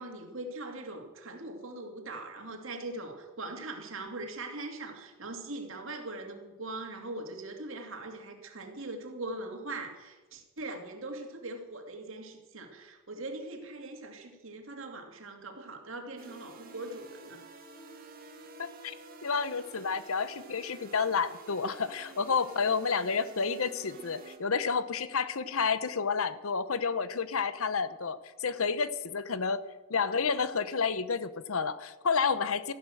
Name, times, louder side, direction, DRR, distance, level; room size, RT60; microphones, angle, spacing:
voice 1, 0.0-17.4, right 2 dB, 60° right, 4 dB, 2.4 m, -41 dB
sound 1, 16.2-24.4, right 3 dB, 40° right, 1.9 m, -50 dB
voice 2, 18.6-18.9 19.2-29.6 29.9-32.7, left 5 dB, 70° left, 14 dB, 0.8 m, -30 dB
14.0 x 11.0 x 7.7 m, 1.2 s
head